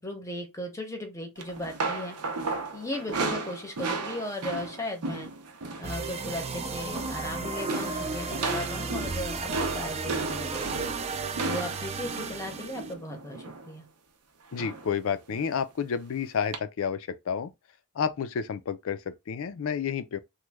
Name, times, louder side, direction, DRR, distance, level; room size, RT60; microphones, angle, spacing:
voice 1, 0.0-2.1 2.7-5.3 5.8-10.8 11.4-13.8, left 1 dB, 15° left, 0.7 m, -37 dB
sound 1, 1.4-5.9 6.2-6.5 6.8-7.3 7.7-13.7 14.6-14.9 15.3-15.5 16.5-16.6, right 3 dB, 80° right, 0.6 m, -34 dB
sound 2, 5.8-12.9, right 4 dB, 30° right, 0.4 m, -34 dB
voice 2, 14.5-17.5 18.0-20.2, left 7 dB, 65° left, 0.4 m, -30 dB
3.0 x 2.1 x 3.3 m
head